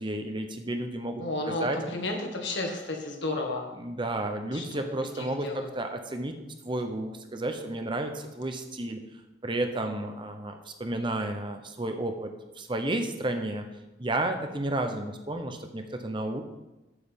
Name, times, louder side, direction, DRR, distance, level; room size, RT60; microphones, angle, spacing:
voice 1, 0.0-1.8 3.7-6.4 6.6-9.0 9.4-12.3 12.6-13.6 14.0-16.4, right 1 dB, 25° right, 6 dB, 1.0 m, -32 dB
voice 2, 1.2-3.7 4.5-4.6 5.2-5.7, left 2 dB, 80° left, 2 dB, 1.9 m, -32 dB
8.1 x 5.9 x 7.3 m, 1.0 s
head